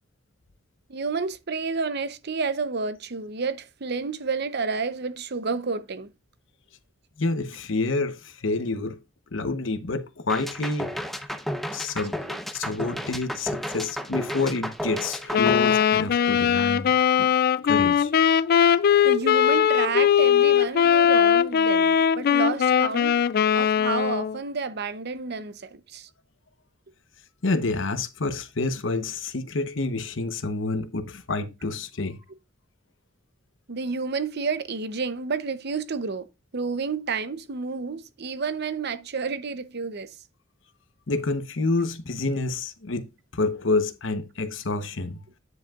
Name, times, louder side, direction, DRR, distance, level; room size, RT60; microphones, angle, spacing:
voice 1, 0.9-6.1 12.3-12.4 12.9-13.0 19.0-23.2 23.5-26.1 33.7-36.3 36.5-40.2, right 4 dB, 55° right, 0.8 m, -30 dB
voice 2, 7.2-9.0 9.3-10.9 11.7-12.2 12.5-16.9 17.2-17.3 17.6-18.1 27.4-32.2 41.1-43.1 43.3-45.2, left 3 dB, 70° left, 1.0 m, -28 dB
sound 1, 10.3-16.5, equal, ahead, 0.8 m, -33 dB
Wind instrument woodwind instrument, 15.3-24.4, left 8 dB, 50° left, 0.4 m, -20 dB
9.6 x 7.8 x 2.4 m
head